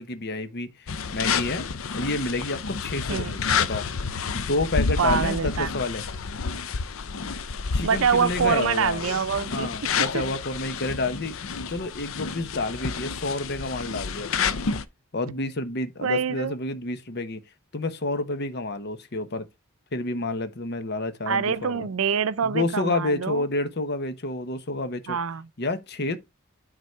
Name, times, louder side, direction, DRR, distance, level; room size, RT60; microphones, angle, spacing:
voice 1, 0.0-1.6 1.9-3.9 4.3-6.0 7.7-9.1 9.5-11.4 11.7-14.6 15.1-17.4 17.7-19.5 19.9-21.9 22.4-25.2 25.6-26.2, left 2 dB, 50° left, 1.0 m, -29 dB
sound 1, 0.9-14.8, left 5 dB, 75° left, 0.6 m, -30 dB
voice 2, 3.1-3.4 5.0-5.7 7.8-9.7 10.1-10.2 16.0-16.5 21.3-23.5 25.1-25.5, right 6 dB, 80° right, 0.5 m, -25 dB
9.4 x 4.0 x 4.5 m
head